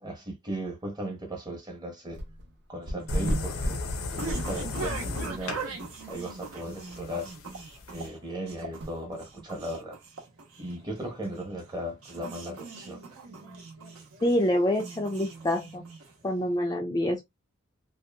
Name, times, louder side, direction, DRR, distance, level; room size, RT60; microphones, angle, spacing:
voice 1, 0.0-2.2 2.7-3.8 4.2-5.6 6.1-7.3 7.9-10.0 10.6-13.0, right 1 dB, 20° right, 0.7 m, -37 dB
sound 1, 2.1-2.5 2.9-5.0 5.4-5.5 6.0-6.1 6.4-6.5 6.9-7.0 8.8-8.9, equal, 50° right, 0.6 m, -32 dB
sound 2, 2.8-16.4, right 3 dB, 80° right, 0.9 m, -41 dB
sound 3, 3.1-8.1, left 3 dB, 75° left, 0.5 m, -36 dB
voice 2, 14.2-15.8 16.2-17.3, left 1 dB, 20° left, 0.3 m, -26 dB
2.8 x 2.3 x 2.2 m
head